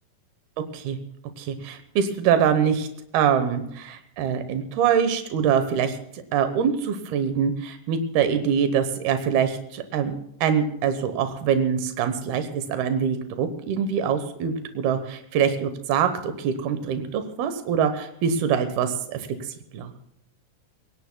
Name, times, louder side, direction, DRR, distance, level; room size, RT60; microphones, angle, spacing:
voice 1, 1.4-2.9 3.1-6.0 6.3-10.1 10.4-19.3 19.7-19.9, right 7 dB, 90° right, 8 dB, 3.0 m, -24 dB
29.5 x 17.5 x 2.2 m, 0.78 s
omnidirectional pair, 4.3 m